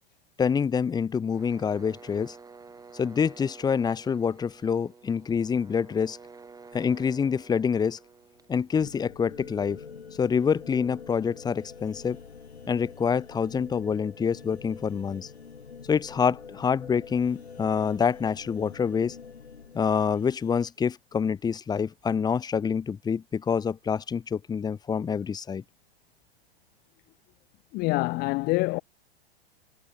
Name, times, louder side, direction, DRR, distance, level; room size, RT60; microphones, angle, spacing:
voice 1, 0.4-2.4 2.9-6.2 6.7-8.0 8.5-9.8 10.2-12.2 12.7-15.3 15.9-19.2 19.7-25.6, left 6 dB, 10° left, 1.2 m, -26 dB
sound 1, 1.3-9.1, right 4 dB, 10° right, 6.6 m, -50 dB
sound 2, 8.7-20.7, left 5 dB, 80° left, 7.2 m, -46 dB
voice 2, 27.7-28.8, left 24 dB, 30° left, 0.8 m, -26 dB
figure-of-eight pair, 110°, 32 cm